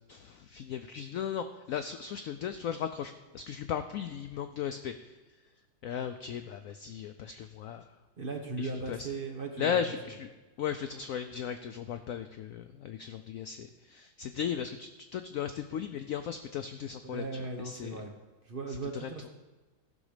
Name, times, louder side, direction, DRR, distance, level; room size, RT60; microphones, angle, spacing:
voice 1, 0.1-5.1 5.8-7.8 8.6-9.1 9.6-10.3 10.6-18.0 18.9-19.1, left 8 dB, 80° left, 9 dB, 0.7 m, -36 dB
voice 2, 8.2-9.8 17.0-18.1 18.4-19.3, right 3 dB, 35° right, 2 dB, 1.1 m, -37 dB
15.0 x 6.2 x 5.0 m, 1.2 s
omnidirectional pair, 1.9 m